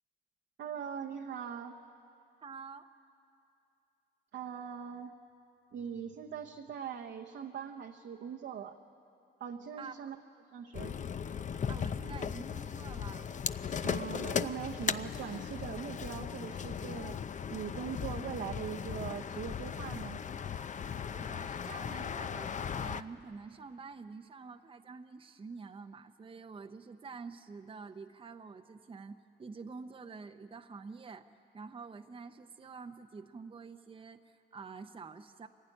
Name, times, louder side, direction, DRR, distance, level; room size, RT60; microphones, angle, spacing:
voice 1, 0.6-1.8 4.3-5.1 5.7-8.8 9.4-10.2 10.5-10.9 13.8-17.2 17.5-20.2, right 8 dB, 65° right, 2 dB, 1.0 m, -41 dB
voice 2, 2.4-2.9 9.8-9.9 11.7-13.3 21.2-35.5, right 4 dB, 25° right, 6 dB, 0.7 m, -47 dB
sound 1, 10.7-23.0, left 7 dB, 40° left, 0.6 m, -37 dB
23.5 x 16.0 x 9.9 m, 2.7 s
cardioid pair, 90°, 20 cm